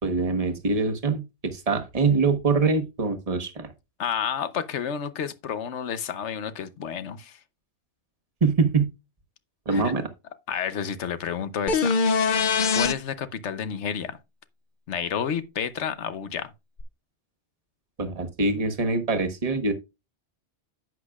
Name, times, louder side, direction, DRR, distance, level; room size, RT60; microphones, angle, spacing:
voice 1, 0.0-1.2 1.5-3.7 8.4-8.9 9.7-10.1 18.0-19.7, right 4 dB, 35° right, 1.3 m, -24 dB
voice 2, 4.0-7.4 9.7-9.9 10.5-12.0 12.7-14.2 14.9-16.5, left 7 dB, 85° left, 1.1 m, -30 dB
sound 1, 11.7-12.9 16.8-16.9, left 5 dB, 50° left, 0.8 m, -22 dB
10.5 x 8.2 x 2.4 m
omnidirectional pair, 1.2 m